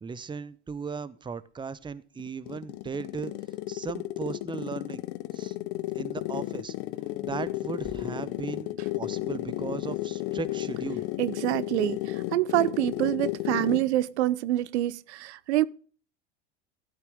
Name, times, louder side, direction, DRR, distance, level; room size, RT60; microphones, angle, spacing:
voice 1, 0.0-3.3 3.7-5.0 5.3-5.6 5.9-6.7 7.2-11.1, right 5 dB, 15° right, 0.8 m, -37 dB
sound 1, 2.2-14.0, left 17 dB, 55° left, 0.9 m, -33 dB
voice 2, 11.2-15.6, right 14 dB, 70° right, 0.7 m, -26 dB
15.5 x 8.9 x 3.7 m
hypercardioid pair, 90°, 35 cm